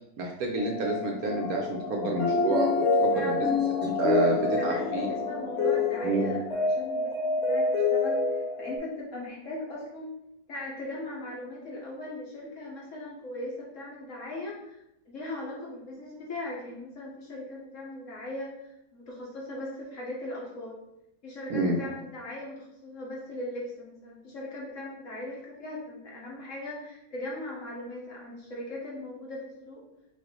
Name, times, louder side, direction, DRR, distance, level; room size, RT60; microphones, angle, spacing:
voice 1, 0.2-3.5 3.8-5.1 6.0-6.3 21.5-21.8, right 3 dB, 65° right, 1 dB, 1.0 m, -29 dB
sound 1, 0.6-8.8, left 3 dB, 30° left, 2.1 m, -27 dB
sound 2, 1.2-6.4, left 4 dB, 70° left, 1.3 m, -37 dB
voice 2, 3.1-3.6 4.6-10.1 10.5-20.8 21.2-29.8, left 1 dB, 50° left, -3 dB, 1.3 m, -39 dB
5.2 x 2.6 x 3.8 m, 0.82 s
omnidirectional pair, 1.9 m